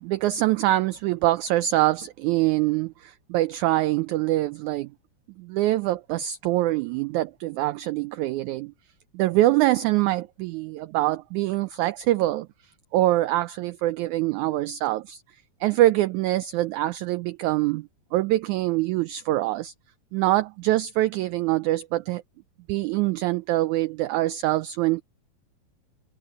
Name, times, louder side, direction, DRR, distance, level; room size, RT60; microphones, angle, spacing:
voice 1, 0.0-4.9 5.4-8.7 9.1-12.5 12.9-15.2 15.6-19.7 20.1-22.2 22.7-25.0, right 16 dB, 85° right, 1.7 m, -24 dB
omnidirectional pair, 4.1 m